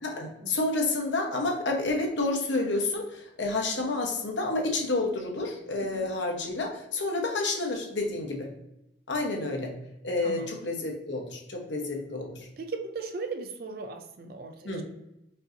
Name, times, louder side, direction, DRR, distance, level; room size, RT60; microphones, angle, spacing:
voice 1, 0.0-8.5 9.1-9.7 10.0-12.5 14.6-14.8, left 2 dB, 80° left, 2 dB, 0.9 m, -29 dB
voice 2, 10.2-10.5 12.6-14.8, right 3 dB, 50° right, 6 dB, 0.5 m, -37 dB
5.3 x 2.8 x 2.6 m, 0.86 s
head